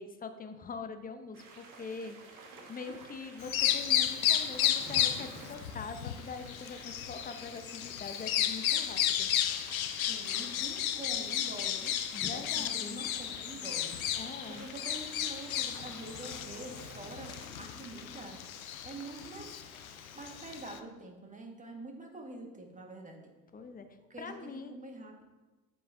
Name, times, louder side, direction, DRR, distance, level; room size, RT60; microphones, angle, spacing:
voice 1, 0.0-9.3 12.1-13.0 14.2-14.7 23.5-23.9 24.2-24.7, left 4 dB, 20° left, 8 dB, 0.8 m, -43 dB
sound 1, 1.3-20.7, right 3 dB, 50° right, 1.5 m, -53 dB
Bird vocalization bird call bird song, 3.4-20.8, left 10 dB, 85° left, 0.5 m, -33 dB
voice 2, 10.0-11.9 12.3-14.2 14.5-17.3 17.6-18.4 18.8-19.6 20.1-23.3 24.1-25.2, right 2 dB, 20° right, 2 dB, 1.7 m, -46 dB
7.7 x 7.5 x 2.7 m, 1.2 s
hypercardioid pair, 60°, 41 cm